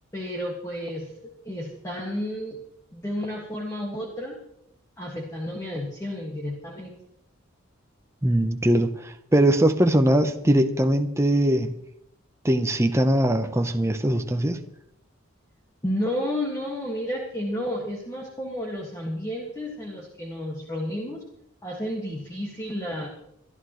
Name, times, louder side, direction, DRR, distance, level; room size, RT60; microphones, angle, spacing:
voice 1, 0.1-2.6 2.9-4.4 5.0-6.9 15.8-21.2 21.6-23.1, equal, 15° left, 1.8 m, -31 dB
voice 2, 8.2-11.8 12.4-14.6, right 1 dB, 15° right, 0.8 m, -21 dB
24.5 x 11.5 x 3.1 m
head